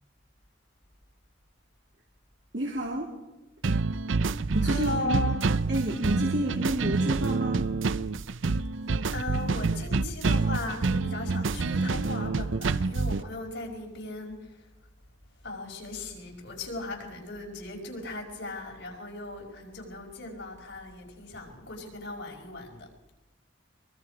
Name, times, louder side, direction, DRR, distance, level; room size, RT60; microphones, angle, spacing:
voice 1, 2.5-3.1 4.5-5.2 5.7-7.7, right 1 dB, 60° right, -1 dB, 2.7 m, -30 dB
sound 1, 3.6-13.2, right 4 dB, 80° right, 0.6 m, -27 dB
voice 2, 4.6-5.4 9.1-14.6 15.4-22.9, left 2 dB, 65° left, 0 dB, 5.4 m, -37 dB
24.0 x 23.0 x 5.0 m, 0.99 s
head